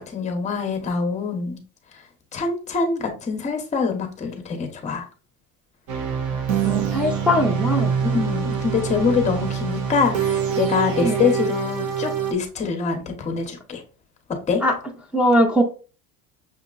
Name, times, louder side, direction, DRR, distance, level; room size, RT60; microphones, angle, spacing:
voice 1, 0.1-1.6 2.3-5.0 8.0-13.8 14.5-14.6, left 5 dB, 20° left, 5 dB, 0.8 m, -24 dB
sound 1, 5.9-12.3, right 7 dB, 70° right, 0.9 m, -25 dB
voice 2, 6.6-7.9 11.0-11.2 14.6-14.7 15.1-15.6, equal, 5° right, 3 dB, 0.5 m, -20 dB
6.1 x 2.8 x 2.4 m, 0.35 s
cardioid pair, 160°, 34 cm